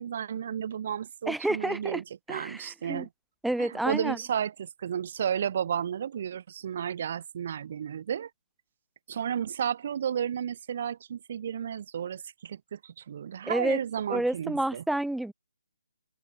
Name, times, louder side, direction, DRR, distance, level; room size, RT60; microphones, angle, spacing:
voice 1, 0.0-3.1 3.6-8.3 9.1-14.8, right 8 dB, 40° right, 3.1 m, -33 dB
voice 2, 1.3-2.0 2.3-3.1 3.4-4.2 13.5-13.8 14.1-15.3, right 1 dB, ahead, 0.8 m, -29 dB
open air
figure-of-eight pair, 140°, 0 cm